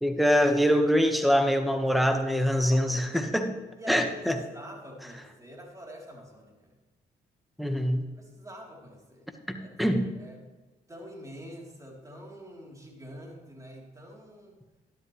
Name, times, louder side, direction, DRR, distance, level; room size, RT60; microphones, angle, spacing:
voice 1, 0.0-3.6 3.9-4.4 7.6-8.1 9.5-10.1, equal, ahead, 6 dB, 1.5 m, -24 dB
voice 2, 2.7-3.0 3.8-6.7 8.2-9.3 9.6-10.4 10.9-14.6, equal, 15° right, -1 dB, 3.6 m, -46 dB
12.0 x 11.0 x 3.3 m, 1.2 s
supercardioid pair, 50°, 19 cm